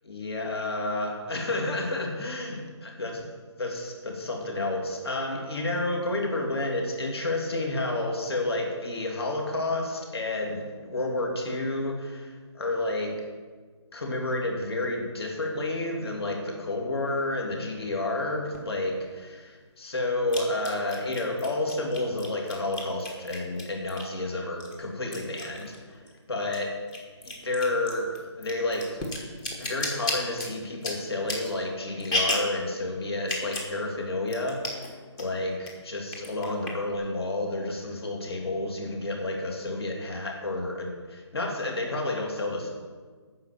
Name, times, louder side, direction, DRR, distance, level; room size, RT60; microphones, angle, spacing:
voice 1, 0.0-3.3 3.6-13.1 13.9-26.0 26.3-26.7 27.2-29.0 29.6-34.6 35.2-42.7, left 2 dB, 55° left, 1 dB, 3.0 m, -30 dB
sound 1, 18.5-18.6 20.3-24.2 24.6-26.2 26.4-32.6 33.2-33.7 34.0-34.1 34.3-34.9 35.2-35.7 36.1-37.0, left 1 dB, 15° left, 1.1 m, -33 dB
9.5 x 6.6 x 8.5 m, 1.5 s
hypercardioid pair, 170°, 15 cm